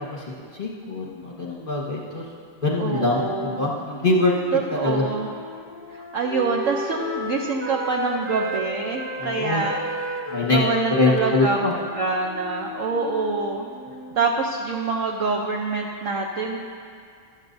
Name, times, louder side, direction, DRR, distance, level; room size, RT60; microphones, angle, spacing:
voice 1, 0.6-2.2 2.6-4.3 4.8-5.0 9.2-9.6 10.3-10.6 11.0-11.7, left 2 dB, 30° left, -4 dB, 1.3 m, -23 dB
voice 2, 2.8-3.7 4.5-5.3 5.9-9.8 10.5-13.7 14.2-16.6, right 4 dB, 65° right, 1 dB, 0.8 m, -26 dB
Wind instrument woodwind instrument, 3.7-8.6 8.9-14.2, right 1 dB, 20° right, 0.3 m, -34 dB
14.5 x 12.5 x 2.6 m, 2.2 s
omnidirectional pair, 2.0 m